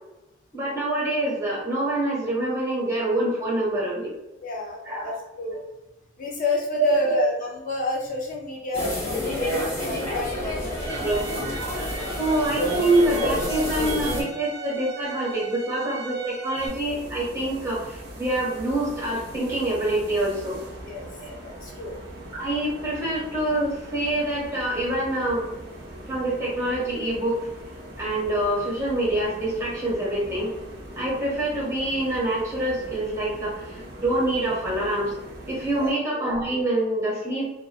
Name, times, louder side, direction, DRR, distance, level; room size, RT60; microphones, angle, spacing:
voice 1, 0.5-4.1 4.9-5.2 6.8-7.2 11.0-11.3 12.2-20.6 21.2-21.3 22.3-25.5 26.1-27.4 28.0-30.5 31.0-35.1 35.5-37.5, right 1 dB, 15° right, -6 dB, 1.1 m, -25 dB
voice 2, 4.4-5.6 6.2-10.7 20.9-21.1 21.4-22.0 35.7-36.0, left 3 dB, 40° left, -2 dB, 0.4 m, -30 dB
sound 1, 8.7-14.2, left 1 dB, 15° left, 1.1 m, -28 dB
Bowed string instrument, 10.7-16.7, right 5 dB, 85° left, 1.0 m, -38 dB
sound 2, 16.5-35.9, right 1 dB, 55° right, 0.5 m, -41 dB
2.4 x 2.3 x 2.3 m, 0.94 s
head